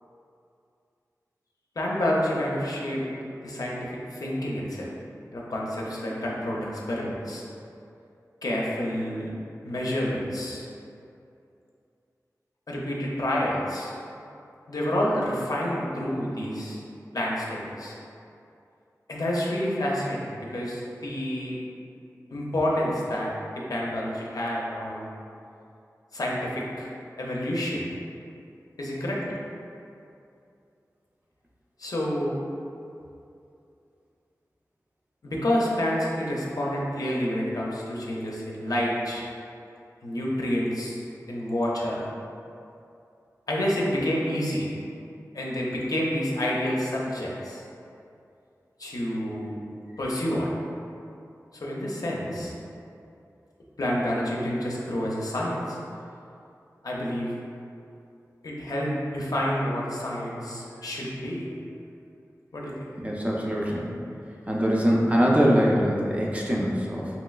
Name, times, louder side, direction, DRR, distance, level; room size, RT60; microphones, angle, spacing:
voice 1, 1.8-3.0 3.4-4.9 5.3-7.4 8.4-9.3 9.6-10.7 12.7-14.0 14.7-16.8 17.1-18.0 19.1-21.6 22.3-23.3 23.6-25.1 26.1-26.9 27.2-28.0 28.8-29.2 31.8-32.4 35.2-39.2 40.0-42.1 43.5-44.7 45.3-47.6 48.8-49.5 50.0-50.5 51.5-52.5 53.8-55.8 56.8-57.3 58.4-61.4 62.5-62.7, equal, 70° left, -4 dB, 0.5 m, -28 dB
voice 2, 63.0-64.0 64.5-67.1, equal, 20° right, -3 dB, 0.4 m, -23 dB
3.0 x 2.9 x 2.3 m, 2.6 s
wide cardioid pair, 50°, 6 cm